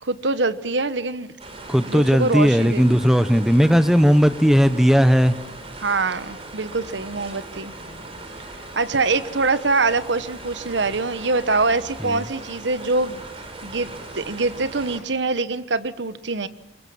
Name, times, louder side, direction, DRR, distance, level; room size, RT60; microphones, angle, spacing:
voice 1, 0.0-1.3 1.9-2.8 5.8-7.7 8.5-16.5, right 3 dB, 75° right, 13 dB, 1.2 m, -24 dB
sound 1, 1.4-15.0, right 2 dB, 35° right, 4.5 m, -39 dB
voice 2, 1.7-5.4 8.1-8.2 12.0-12.3, equal, ahead, 12 dB, 1.0 m, -17 dB
25.5 x 23.0 x 7.2 m, 0.89 s
head